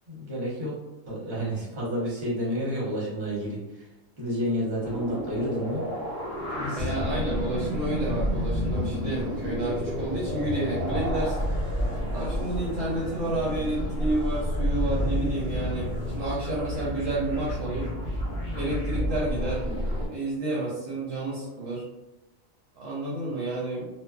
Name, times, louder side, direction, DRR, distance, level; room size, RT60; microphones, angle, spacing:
voice 1, 0.1-0.8 1.0-3.9 4.2-5.9 6.6-6.9, equal, 40° right, -6 dB, 1.0 m, -30 dB
sound 1, 4.8-20.1, left 1 dB, 45° left, 0.6 m, -30 dB
voice 2, 6.8-11.5 12.1-17.9 18.5-19.8 20.1-21.8 22.8-23.8, right 2 dB, 70° right, -6 dB, 0.9 m, -30 dB
2.4 x 2.3 x 2.2 m, 1.0 s
omnidirectional pair, 1.4 m